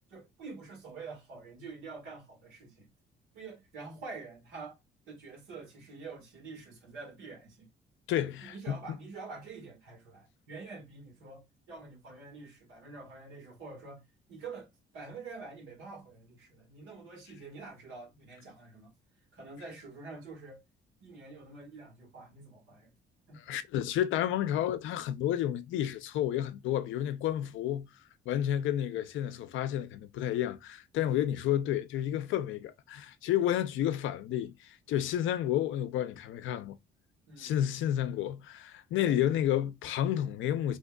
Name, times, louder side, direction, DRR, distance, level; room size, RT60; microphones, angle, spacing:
voice 1, 0.1-2.9 3.3-4.8 5.1-7.7 8.2-14.0 14.3-14.7 14.9-18.9 19.3-20.6 21.0-22.9 23.3-23.6 37.3-37.6 39.0-39.2, right 4 dB, 90° right, 1.6 m, -47 dB
voice 2, 8.1-8.8 23.5-27.9 28.3-36.8 37.4-40.8, left 11 dB, 80° left, 0.4 m, -31 dB
3.5 x 2.9 x 2.3 m
cardioid pair, 90°, 20 cm